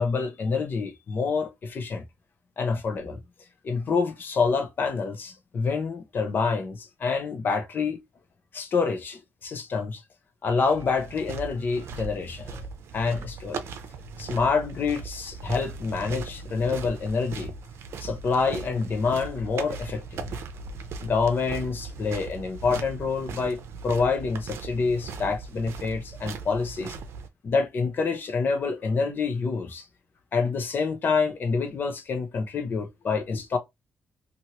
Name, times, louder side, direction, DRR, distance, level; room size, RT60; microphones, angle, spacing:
voice 1, 0.0-2.0 2.6-3.2 3.6-8.0 8.5-10.0 10.4-12.6 12.9-13.6 14.2-17.5 18.0-20.4 21.0-23.6 23.8-26.9 27.4-29.9 30.3-33.6, left 4 dB, 50° left, 0.7 m, -27 dB
sound 1, 10.6-27.3, right 5 dB, 90° right, 0.5 m, -38 dB
2.9 x 2.6 x 2.9 m
cardioid pair, 125°, 4 cm